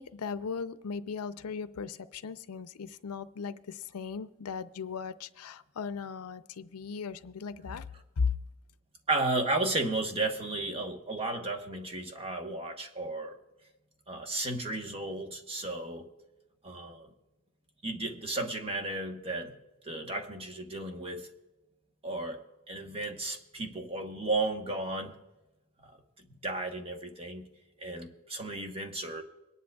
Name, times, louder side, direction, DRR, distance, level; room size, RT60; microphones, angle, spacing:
voice 1, 0.0-7.9 8.2-8.4, left 5 dB, 85° left, 13 dB, 0.5 m, -37 dB
voice 2, 9.1-13.4 14.1-16.1 16.6-17.1 17.8-19.5 19.8-21.3 22.0-22.4 22.7-25.1 25.8-25.9 26.2-27.5 27.8-29.2, right 2 dB, 25° right, 4 dB, 1.1 m, -34 dB
24.5 x 10.5 x 2.3 m, 1.0 s
head